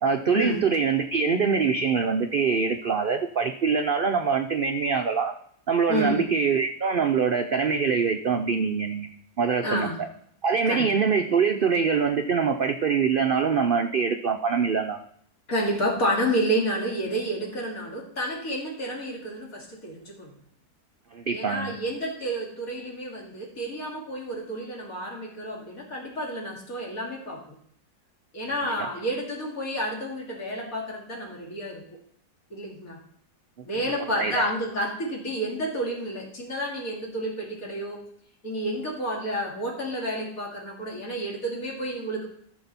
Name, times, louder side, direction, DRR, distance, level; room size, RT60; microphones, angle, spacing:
voice 1, 0.0-5.3 5.7-9.1 9.4-9.9 10.4-15.0 21.1-21.7 28.8-28.9 34.2-34.5, right 5 dB, 60° right, 6 dB, 0.5 m, -24 dB
voice 2, 5.9-6.3 9.6-10.0 10.6-10.9 15.5-20.3 21.3-27.5 28.3-31.8 32.5-33.0 33.6-38.0 38.4-42.3, right 1 dB, 60° left, -2 dB, 2.9 m, -30 dB
14.5 x 6.1 x 4.1 m, 0.66 s
omnidirectional pair, 1.7 m